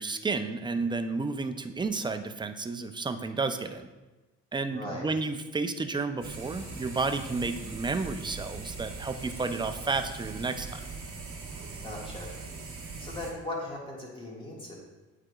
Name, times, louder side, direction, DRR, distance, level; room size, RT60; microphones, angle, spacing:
voice 1, 0.0-3.9 4.5-10.9, right 3 dB, 15° right, 8 dB, 0.4 m, -31 dB
voice 2, 4.7-5.1 11.8-12.3 13.0-14.8, left 1 dB, 15° left, -4 dB, 1.8 m, -38 dB
sound 1, 6.2-13.3, right 4 dB, 45° right, 1.5 m, -41 dB
8.6 x 4.8 x 2.3 m, 1.1 s
cardioid pair, 90°, 30 cm